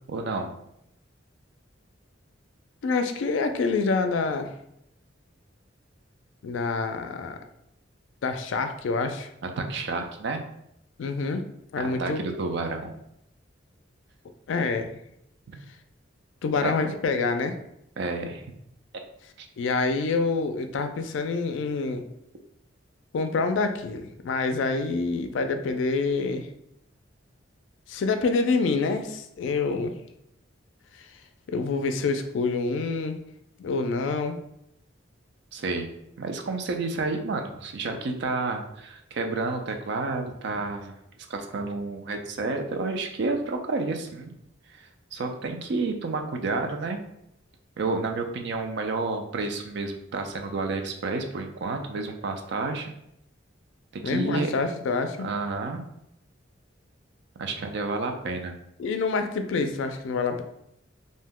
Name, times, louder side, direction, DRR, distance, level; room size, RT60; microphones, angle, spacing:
voice 1, 0.1-0.5 9.4-10.4 11.8-12.9 16.6-16.9 18.0-18.4 35.5-35.9 36.2-41.0 41.3-44.4 44.7-47.0 47.8-52.9 53.9-54.5 55.2-55.8 57.4-58.6, right 3 dB, 60° right, 5 dB, 0.4 m, -30 dB
voice 2, 2.8-4.5 6.4-7.4 8.2-9.3 11.0-11.5 11.7-12.3 14.5-15.0 16.4-17.6 19.6-22.0 23.1-26.5 27.9-30.0 31.5-33.2 33.6-34.4 54.0-55.3 58.8-60.4, left 4 dB, 75° left, 7 dB, 0.3 m, -27 dB
2.6 x 2.1 x 3.5 m, 0.78 s
head